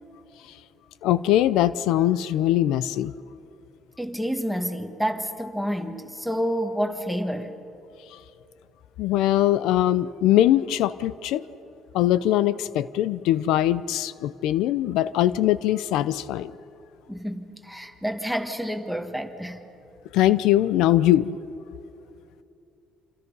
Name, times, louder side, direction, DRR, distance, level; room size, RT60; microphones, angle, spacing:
voice 1, 1.0-3.1 9.0-11.4 11.9-16.5 20.1-21.4, left 13 dB, 85° left, 16 dB, 0.5 m, -21 dB
voice 2, 4.0-7.5 17.1-19.6, equal, ahead, 7 dB, 1.5 m, -29 dB
27.5 x 27.0 x 5.4 m, 2.8 s
cardioid pair, 130°, 0 cm